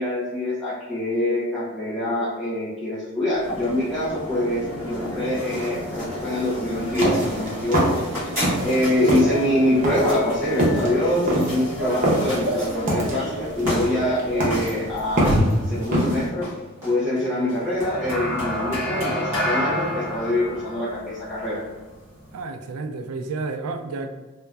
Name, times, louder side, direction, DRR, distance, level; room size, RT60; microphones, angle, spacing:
voice 1, 0.0-8.0 8.6-16.5 16.8-21.6, left 1 dB, 5° left, -12 dB, 0.5 m, -25 dB
sound 1, 3.3-22.4, equal, 15° right, 1.4 m, -29 dB
sound 2, 6.8-8.8 9.0-16.3, right 1 dB, 40° right, 0.7 m, -23 dB
voice 2, 22.3-24.1, right 3 dB, 90° right, 7 dB, 0.3 m, -31 dB
3.1 x 2.1 x 2.3 m, 1.2 s
head